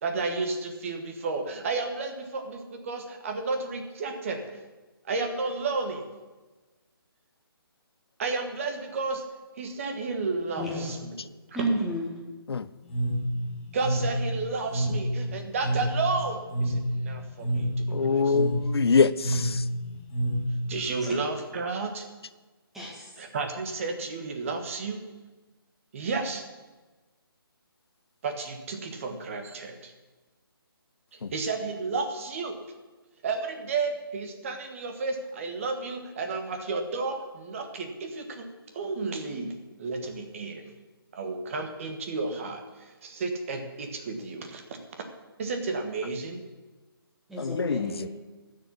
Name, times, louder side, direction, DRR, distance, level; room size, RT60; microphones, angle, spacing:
voice 1, 0.0-4.6 5.0-6.1 8.2-9.2 9.6-11.2 13.7-18.4 20.7-22.0 23.2-25.0 25.9-26.4 28.2-29.9 31.1-32.6 33.2-38.5 38.7-40.7 41.1-44.6 45.4-46.4, right 3 dB, 35° right, 1.5 m, -32 dB
voice 2, 10.6-10.9 11.5-12.1 21.0-21.1 22.7-23.1 47.3-48.1, right 1 dB, 5° right, 1.9 m, -31 dB
sound 1, 12.8-20.7, equal, 20° left, 3.6 m, -28 dB
voice 3, 17.9-19.6 31.2-31.3 47.4-48.1, left 5 dB, 90° left, 0.6 m, -24 dB
12.5 x 6.8 x 8.6 m
hypercardioid pair, 165°, 13 cm